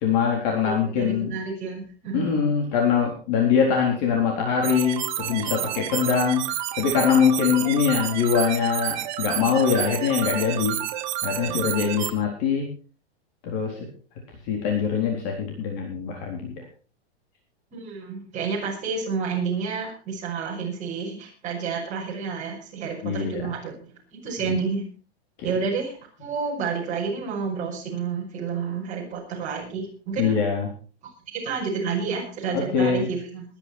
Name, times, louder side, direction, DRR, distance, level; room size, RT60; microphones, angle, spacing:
voice 1, 0.0-1.3 2.1-6.4 6.8-10.8 11.2-12.7 13.4-13.9 14.4-16.5 23.0-23.4 24.5-24.6 30.2-30.7 32.5-33.1, left 6 dB, 40° left, 1 dB, 4.0 m, -23 dB
voice 2, 0.6-2.3 17.7-23.7 24.1-24.8 25.4-30.4 31.3-33.4, right 5 dB, 20° right, -3 dB, 6.0 m, -30 dB
sound 1, 4.6-12.1, right 13 dB, 45° right, 1.6 m, -30 dB
21.0 x 10.5 x 4.4 m, 0.37 s
supercardioid pair, 160°, 33 cm